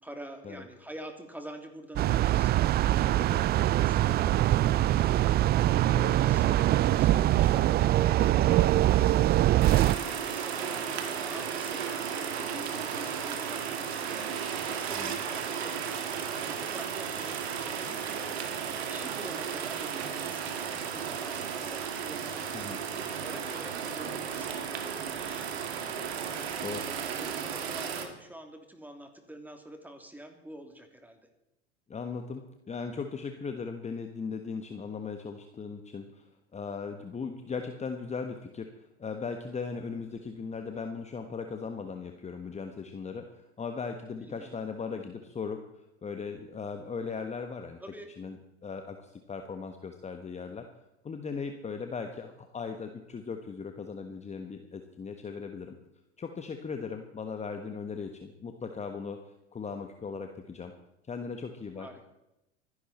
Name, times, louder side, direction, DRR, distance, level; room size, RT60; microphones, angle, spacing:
voice 1, 0.0-16.1 16.5-17.3 17.8-18.4 18.8-26.3 26.7-31.2 44.2-44.6 47.8-48.2 61.8-62.0, right 1 dB, 5° right, 5 dB, 3.0 m, -47 dB
sound 1, 2.0-9.9, right 14 dB, 30° right, 0.5 m, -23 dB
sound 2, 9.6-28.1, right 7 dB, 75° right, 2.1 m, -34 dB
voice 2, 31.9-36.2 36.5-47.8 48.2-48.4 48.6-50.7 51.0-55.7 56.2-59.2 59.5-60.7 61.1-62.0, left 5 dB, 20° left, 6 dB, 1.3 m, -38 dB
24.5 x 11.5 x 4.4 m, 0.91 s
hypercardioid pair, 80°, 32 cm